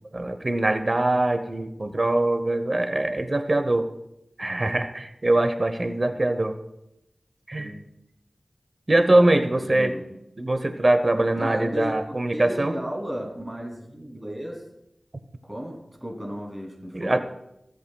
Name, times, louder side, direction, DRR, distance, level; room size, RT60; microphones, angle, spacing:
voice 1, 0.1-3.9 4.4-6.6 7.5-7.7 8.9-9.9 10.4-12.7 16.9-17.2, right 1 dB, 50° right, 9 dB, 0.9 m, -22 dB
voice 2, 9.5-10.0 11.4-14.6 15.4-17.2, equal, 25° right, 1 dB, 3.0 m, -34 dB
17.0 x 7.8 x 2.3 m, 0.83 s
cardioid pair, 40°, 0 cm